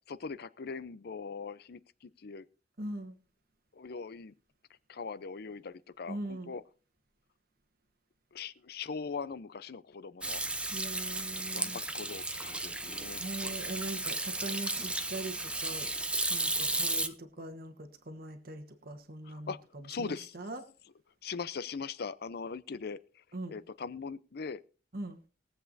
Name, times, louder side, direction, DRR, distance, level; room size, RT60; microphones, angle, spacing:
voice 1, 0.0-2.5 3.7-4.3 4.9-6.6 8.3-10.4 11.5-13.2 17.0-17.1 19.2-19.6 19.8-20.4 21.2-24.6, left 5 dB, 60° left, 0.6 m, -41 dB
voice 2, 2.8-3.1 6.1-6.5 10.7-11.8 13.2-15.9 16.3-20.6 23.3-23.6 24.9-25.2, right 2 dB, 55° right, 1.2 m, -41 dB
Hands / Sink (filling or washing), 10.2-17.1, right 2 dB, 5° right, 0.6 m, -34 dB
21.5 x 7.9 x 2.6 m
head